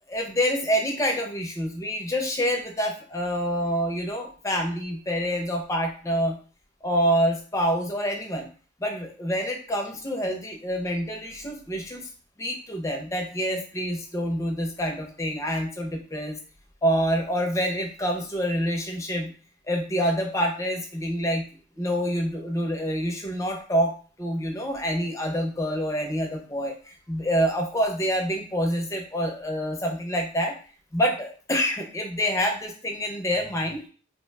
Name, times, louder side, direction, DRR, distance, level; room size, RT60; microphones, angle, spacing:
voice 1, 0.1-6.4 6.8-8.5 8.8-12.1 12.4-16.4 16.8-19.3 19.7-21.4 21.8-30.5 30.9-33.8, equal, 15° left, 2 dB, 0.5 m, -27 dB
2.9 x 2.1 x 3.2 m, 0.39 s
head